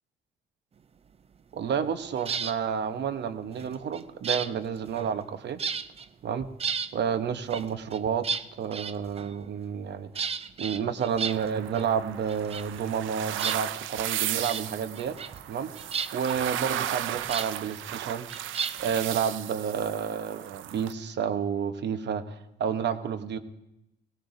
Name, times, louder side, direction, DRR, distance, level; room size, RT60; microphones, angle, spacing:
voice 1, 1.5-5.6 6.2-6.5 6.9-8.3 8.6-10.3 10.6-15.2 15.5-15.8 16.1-18.3 18.8-23.4, right 7 dB, 60° right, 11 dB, 0.9 m, -30 dB
sound 1, 2.2-2.6 3.5-5.3 5.6-6.1 6.4-6.9 7.5-9.5 10.2-11.8 12.1-13.1 13.4-14.0 14.4-14.7 15.0-15.5 15.8-17.5 18.3-19.0, right 6 dB, 30° right, 0.4 m, -34 dB
sound 2, 11.3-20.9, right 12 dB, 80° right, 0.5 m, -35 dB
18.5 x 17.0 x 2.6 m, 0.90 s
cardioid pair, 90°, 20 cm